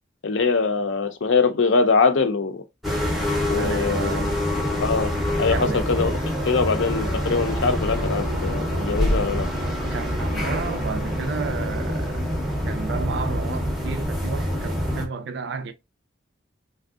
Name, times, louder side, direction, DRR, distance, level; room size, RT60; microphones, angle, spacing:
voice 1, 0.2-2.6 3.5-4.2 4.8-5.1 5.4-6.1 6.5-9.5, left 4 dB, 70° left, 0.6 m, -22 dB
sound 1, 2.8-15.1, equal, ahead, 0.6 m, -25 dB
voice 2, 3.5-4.4 5.5-5.9 9.8-12.3 12.7-15.7, right 5 dB, 60° right, 0.4 m, -32 dB
3.5 x 2.6 x 2.3 m
head